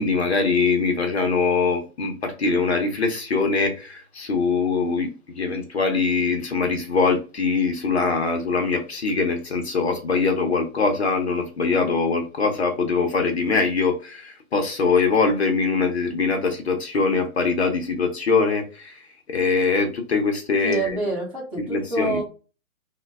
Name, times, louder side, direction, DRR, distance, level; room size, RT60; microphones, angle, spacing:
voice 1, 0.0-21.0 21.7-22.2, left 4 dB, 50° left, 0.6 m, -23 dB
voice 2, 20.6-22.2, right 2 dB, 25° right, 1.1 m, -27 dB
3.1 x 2.2 x 3.3 m
hypercardioid pair, 175°, 43 cm